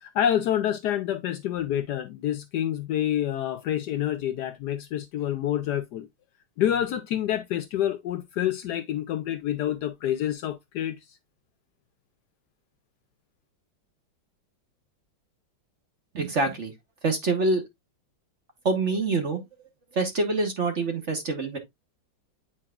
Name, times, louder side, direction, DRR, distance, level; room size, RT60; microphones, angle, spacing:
voice 1, 0.0-6.1 6.6-11.0, left 11 dB, 70° left, 1.0 m, -27 dB
voice 2, 16.1-16.7 17.0-17.6 18.6-19.4 19.9-21.6, right 3 dB, 45° right, 1.2 m, -25 dB
8.7 x 4.7 x 2.3 m
omnidirectional pair, 2.1 m